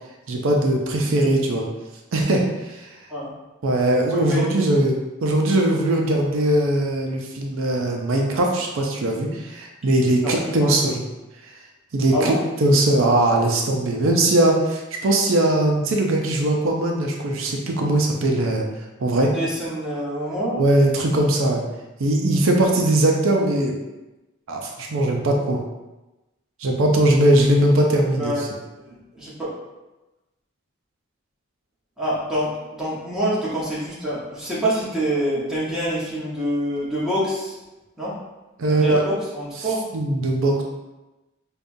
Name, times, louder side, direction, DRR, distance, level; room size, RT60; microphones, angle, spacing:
voice 1, 0.3-1.7 2.1-2.8 3.6-11.0 11.9-18.7 19.0-19.3 20.6-21.6 22.0-23.7 24.5-25.6 26.6-28.5 38.6-39.0 39.6-40.6, right 1 dB, 75° right, 1 dB, 0.5 m, -20 dB
voice 2, 4.1-4.5 10.2-10.7 12.1-12.4 19.3-20.6 28.1-28.4 28.9-29.5 32.0-37.5 38.0-38.2 38.7-39.9, equal, ahead, -9 dB, 1.0 m, -26 dB
5.1 x 2.3 x 2.6 m, 1.0 s
head